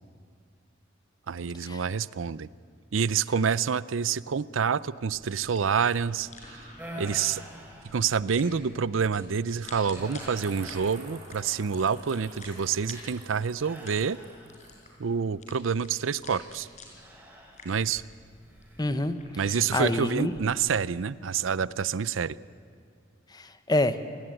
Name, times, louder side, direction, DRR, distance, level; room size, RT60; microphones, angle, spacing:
voice 1, 1.3-2.5 2.9-6.7 7.0-7.4 7.9-14.2 15.0-16.7 17.6-18.0 19.4-22.4, right 6 dB, 90° right, 19 dB, 0.5 m, -27 dB
sound 1, 5.1-21.1, left 2 dB, 40° left, 5.1 m, -50 dB
sound 2, 6.8-8.5 9.0-9.3 9.9-11.8 13.6-14.9 16.9-18.1 18.5-18.9, equal, 10° right, 3.8 m, -46 dB
sound 3, 10.4-14.8, right 2 dB, 30° right, 6.0 m, -50 dB
voice 2, 18.8-19.2 19.5-20.3 23.3-24.0, left 1 dB, 20° left, 11 dB, 1.1 m, -27 dB
27.5 x 19.0 x 9.1 m, 2.2 s
head